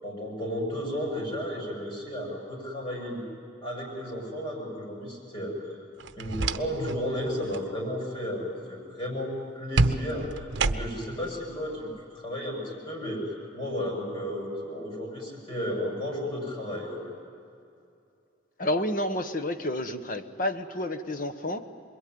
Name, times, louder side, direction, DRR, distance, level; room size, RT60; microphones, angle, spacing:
voice 1, 0.0-3.2 3.6-5.8 6.2-17.0, equal, 25° left, -1 dB, 7.5 m, -33 dB
sound 1, 6.0-7.0 7.3-7.7 9.8-11.2, right 3 dB, 70° right, 0.8 m, -28 dB
voice 2, 18.6-21.7, left 1 dB, 45° left, 9 dB, 1.1 m, -30 dB
27.0 x 22.0 x 9.5 m, 2.6 s
head